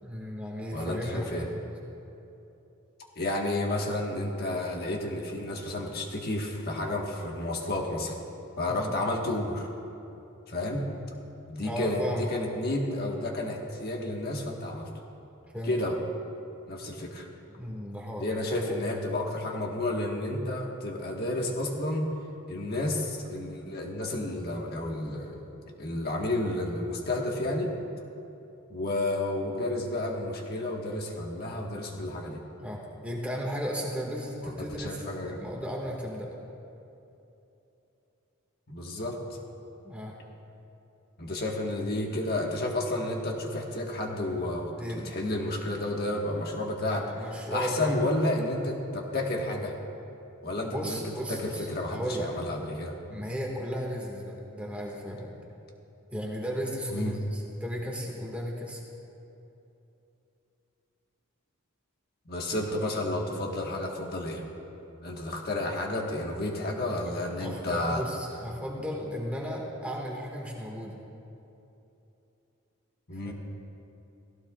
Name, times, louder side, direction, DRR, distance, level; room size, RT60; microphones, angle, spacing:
voice 1, 0.0-1.7 8.7-8.9 11.6-12.3 15.5-15.7 17.5-18.3 18.5-18.7 32.6-36.3 39.8-40.2 44.8-45.2 47.1-48.1 50.6-52.3 53.1-55.3 56.1-58.8 67.1-67.2 67.4-71.0 73.2-73.3, equal, 5° right, -2 dB, 1.9 m, -35 dB
voice 2, 0.7-1.5 3.1-8.1 8.6-9.7 10.5-10.8 11.5-14.9 15.7-16.0 16.7-17.3 18.2-22.1 22.5-25.5 25.7-27.7 28.7-32.4 34.4-35.4 38.7-39.4 41.2-47.1 47.5-49.7 50.4-51.0 51.3-53.0 56.9-57.1 62.2-64.4 65.0-68.0 73.1-73.3, left 1 dB, 45° left, 0 dB, 1.5 m, -31 dB
17.5 x 16.5 x 2.4 m, 2.9 s
head